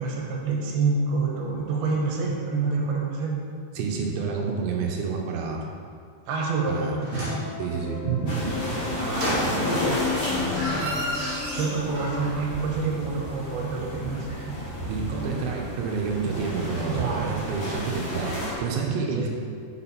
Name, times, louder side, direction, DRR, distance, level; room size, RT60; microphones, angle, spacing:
voice 1, 0.0-3.3 6.3-7.4 9.0-11.0 11.5-14.3 16.8-17.5 19.1-19.3, right 4 dB, 70° right, -2 dB, 2.8 m, -28 dB
voice 2, 3.8-5.7 6.7-7.3 7.6-8.4 14.9-19.3, right 5 dB, 85° right, -1 dB, 3.0 m, -29 dB
sound 1, 7.0-7.5 9.1-9.9 10.2-12.5 12.7-12.8, left 1 dB, 55° right, 1.6 m, -32 dB
sound 2, 7.1-12.4, left 7 dB, 80° left, 2.5 m, -35 dB
sound 3, 8.3-18.5, equal, 55° left, 0.9 m, -32 dB
6.9 x 6.5 x 4.2 m, 2.2 s
omnidirectional pair, 5.1 m